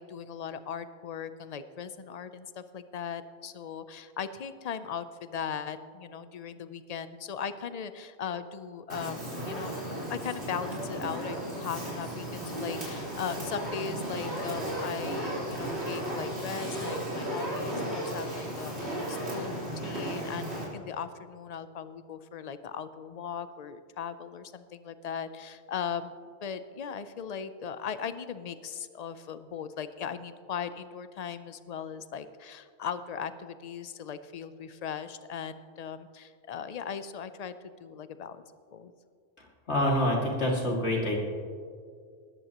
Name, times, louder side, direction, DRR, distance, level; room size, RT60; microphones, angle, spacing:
voice 1, 0.0-26.1 26.4-38.9, left 7 dB, 45° left, 12 dB, 0.6 m, -38 dB
Fire, 8.9-20.6, right 1 dB, 75° right, 4.4 m, -35 dB
voice 2, 39.7-41.2, left 1 dB, 90° left, -2 dB, 2.6 m, -26 dB
19.0 x 14.0 x 3.0 m, 2.2 s
omnidirectional pair, 1.1 m